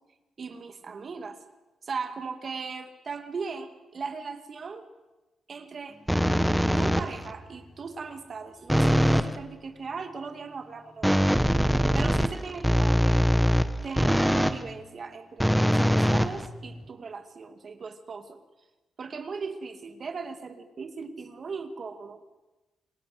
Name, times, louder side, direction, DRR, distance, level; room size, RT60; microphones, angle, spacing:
voice 1, 0.4-1.4 1.8-4.9 5.5-6.0 6.8-11.3 11.7-13.2 13.8-18.4 19.0-22.2, right 5 dB, 50° right, 8 dB, 2.3 m, -38 dB
sound 1, 6.1-7.3 8.7-9.4 11.0-14.6 15.4-16.9, equal, ahead, 1.4 m, -22 dB
28.5 x 20.0 x 7.9 m, 1.1 s
cardioid pair, 100°, 0 cm